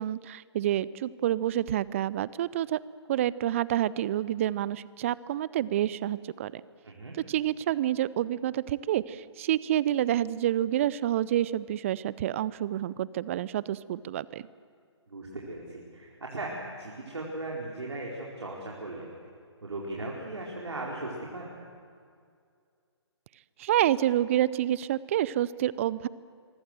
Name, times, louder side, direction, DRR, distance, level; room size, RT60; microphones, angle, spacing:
voice 1, 0.0-2.8 3.1-6.6 7.3-14.4 23.6-26.1, right 12 dB, 30° right, 20 dB, 0.6 m, -28 dB
voice 2, 15.1-19.1 19.6-21.5, right 2 dB, 70° right, -3 dB, 4.5 m, -37 dB
27.0 x 23.5 x 7.7 m, 2.3 s
figure-of-eight pair, 140°, 15 cm